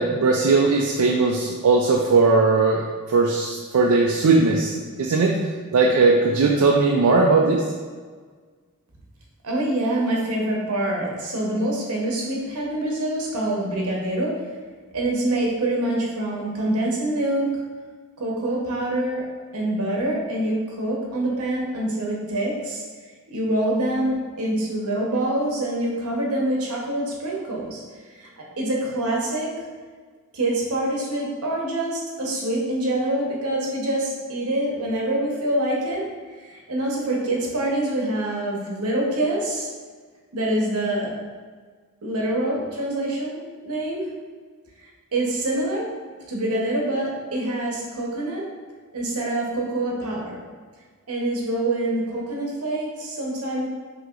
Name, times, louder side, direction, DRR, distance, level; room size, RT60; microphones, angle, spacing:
voice 1, 0.0-5.3 5.7-7.6, right 3 dB, 75° right, -1 dB, 0.4 m, -19 dB
voice 2, 9.4-14.3 14.9-17.5 18.2-19.3 19.5-22.8 23.3-27.8 28.1-28.3 28.6-29.5 30.3-36.0 36.4-39.7 40.3-41.1 42.0-44.0 45.1-45.9 46.3-48.4 48.9-50.4 51.1-53.7, right 1 dB, 90° right, -2 dB, 1.0 m, -25 dB
5.8 x 2.9 x 2.5 m, 1.5 s
head